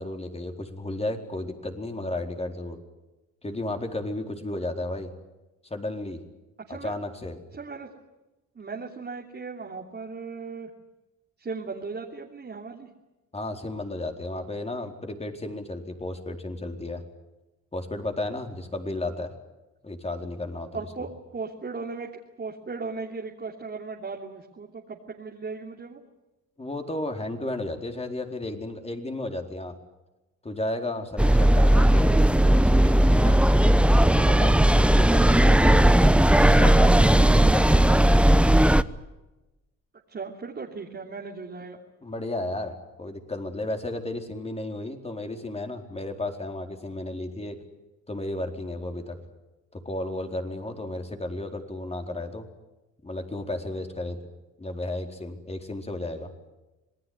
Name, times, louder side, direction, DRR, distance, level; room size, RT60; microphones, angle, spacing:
voice 1, 0.0-2.8 3.4-5.1 5.7-6.2 6.7-7.4 13.3-17.0 17.7-19.3 19.8-20.8 26.6-29.8 30.4-33.4 34.0-36.2 36.6-38.2 42.0-47.6 48.1-49.2 49.7-52.5 53.0-54.2 54.6-56.3, left 2 dB, 20° left, 4 dB, 4.4 m, -33 dB
voice 2, 7.5-7.9 8.5-10.7 11.4-12.9 20.7-26.0 40.1-41.8, right 4 dB, 35° right, 0 dB, 3.1 m, -37 dB
sound 1, 31.2-38.8, right 1 dB, 5° right, 0.9 m, -17 dB
27.0 x 19.5 x 9.6 m, 1.1 s
cardioid pair, 90°, 30 cm